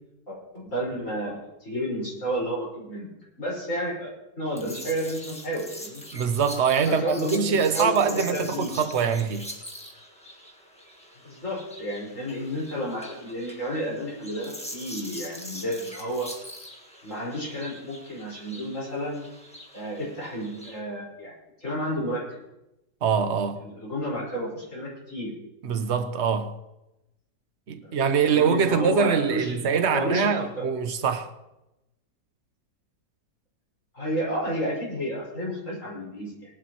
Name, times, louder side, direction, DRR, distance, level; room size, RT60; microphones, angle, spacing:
voice 1, 0.3-3.1 3.4-4.1 4.4-6.0 6.9-8.7 11.2-16.3 17.0-19.2 19.7-21.3 21.6-22.2 23.6-25.3 27.8-28.0 28.2-29.6 29.9-30.7 33.9-36.3, equal, 45° left, 5.5 m, -31 dB
sound 1, 4.5-20.8, equal, 5° left, 1.4 m, -43 dB
voice 2, 6.1-9.5 23.0-23.6 25.6-26.5 27.7-31.3, right 6 dB, 50° right, 0.9 m, -24 dB
19.0 x 11.5 x 3.0 m
omnidirectional pair, 1.9 m